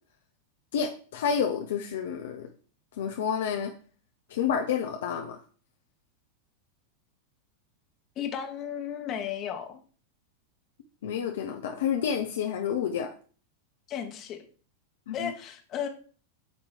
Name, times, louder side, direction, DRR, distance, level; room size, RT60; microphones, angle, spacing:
voice 1, 0.7-2.5 3.0-3.7 4.3-5.4 11.0-13.1 15.1-15.3, left 7 dB, 60° left, 4 dB, 0.6 m, -29 dB
voice 2, 8.2-9.8 13.9-14.4 15.1-15.9, left 8 dB, 35° left, 5 dB, 1.2 m, -34 dB
8.3 x 3.0 x 4.8 m, 0.42 s
figure-of-eight pair, 90°, 0 cm